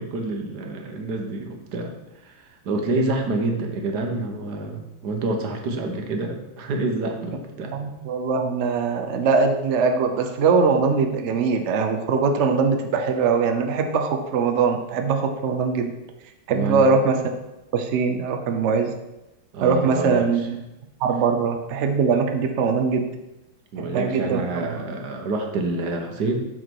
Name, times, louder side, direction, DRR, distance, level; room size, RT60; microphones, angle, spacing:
voice 1, 0.0-1.9 2.2-7.7 16.5-16.9 19.5-20.3 23.7-26.4, right 2 dB, 60° right, 3 dB, 1.4 m, -27 dB
voice 2, 7.7-15.9 16.5-17.2 17.7-18.9 19.6-20.6 21.0-23.0 23.8-24.8, right 5 dB, 80° right, 4 dB, 0.6 m, -22 dB
6.4 x 6.0 x 4.6 m, 0.96 s
omnidirectional pair, 2.2 m